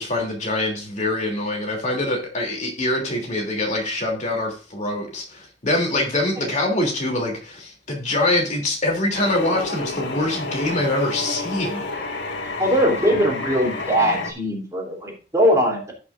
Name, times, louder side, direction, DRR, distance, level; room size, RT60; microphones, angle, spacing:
voice 1, 0.0-12.1, left 1 dB, 40° left, 1 dB, 3.1 m, -24 dB
sound 1, 9.1-14.3, left 3 dB, 80° left, 1.9 m, -30 dB
voice 2, 12.6-15.9, equal, 15° right, -1 dB, 3.2 m, -20 dB
17.5 x 6.1 x 2.6 m, 0.36 s
head